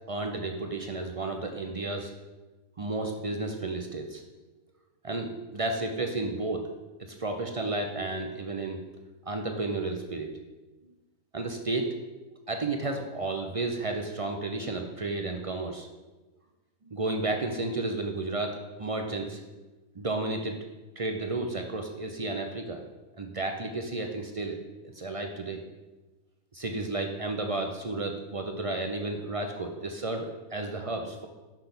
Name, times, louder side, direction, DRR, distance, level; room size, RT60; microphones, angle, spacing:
voice 1, 0.1-2.1 2.8-4.2 5.0-6.7 7.0-8.8 9.3-10.3 11.3-12.0 12.5-15.9 16.9-19.4 19.9-20.6 21.0-22.8 23.2-24.6 24.9-25.6 26.5-31.3, right 2 dB, 55° right, 4 dB, 0.3 m, -32 dB
6.0 x 5.9 x 6.8 m, 1.2 s
omnidirectional pair, 1.6 m